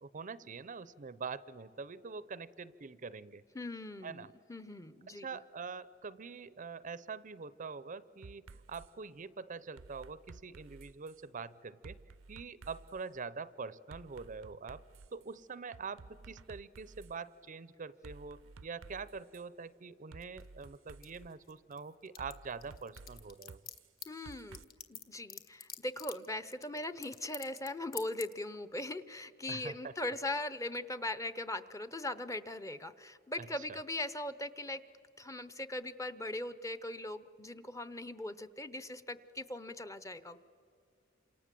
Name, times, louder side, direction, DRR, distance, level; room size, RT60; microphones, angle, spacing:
voice 1, 0.0-3.4 4.0-4.3 5.1-12.0 12.3-14.8 15.1-23.6 29.5-29.9 33.4-33.5, right 5 dB, 40° right, 17 dB, 0.6 m, -44 dB
voice 2, 3.5-5.3 24.1-24.6 24.9-34.8 35.2-40.4, left 1 dB, 15° left, 13 dB, 0.7 m, -40 dB
sound 1, 8.2-8.9 9.8-11.2 11.8-13.0 13.9-15.2 15.7-17.1 18.0-19.4 20.1-21.3 22.2-24.6, right 3 dB, 80° right, 0.6 m, -53 dB
sound 2, 20.2-21.8 22.0-27.7 27.9-28.3, left 8 dB, 50° left, 1.5 m, -46 dB
28.0 x 26.5 x 7.6 m, 2.4 s
head